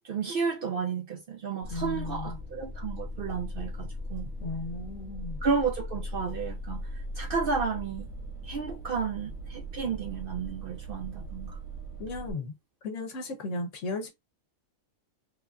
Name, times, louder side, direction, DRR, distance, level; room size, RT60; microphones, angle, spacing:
voice 1, 0.0-4.3 5.4-8.1 8.4-11.6, right 5 dB, 60° right, 0.6 m, -32 dB
sound 1, 1.6-12.3, equal, 90° right, 1.3 m, -39 dB
voice 2, 1.7-2.4 4.4-5.4 12.0-12.5 12.8-14.1, left 2 dB, 75° left, 1.0 m, -35 dB
3.3 x 2.4 x 2.3 m
omnidirectional pair, 1.4 m